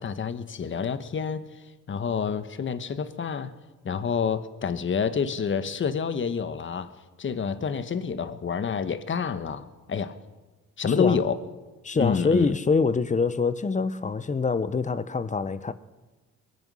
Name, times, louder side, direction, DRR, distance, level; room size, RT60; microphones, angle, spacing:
voice 1, 0.0-3.5 3.8-6.9 7.2-10.2 10.8-11.4 12.0-12.5, left 6 dB, 40° left, 1.2 m, -28 dB
voice 2, 10.8-11.2 11.8-15.7, left 4 dB, 25° left, 0.8 m, -25 dB
22.5 x 9.7 x 6.3 m
cardioid pair, 90°, 30 cm